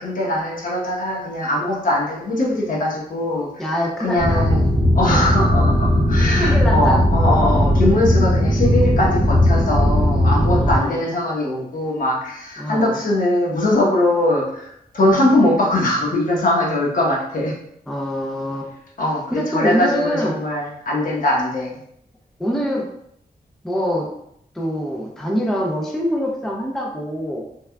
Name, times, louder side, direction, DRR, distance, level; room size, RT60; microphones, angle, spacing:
voice 1, 0.0-3.6 4.0-4.6 4.9-17.5 19.0-21.7, left 1 dB, 60° left, -3 dB, 1.0 m, -21 dB
voice 2, 3.6-4.4 6.4-7.0 10.6-11.0 12.6-13.0 15.2-15.4 17.9-18.7 19.3-20.4 22.4-22.9 23.6-24.1 24.5-27.4, equal, ahead, -2 dB, 0.4 m, -24 dB
sound 1, 4.2-10.8, equal, 35° left, 1.0 m, -17 dB
3.4 x 3.3 x 2.2 m, 0.73 s
wide cardioid pair, 145°, 16 cm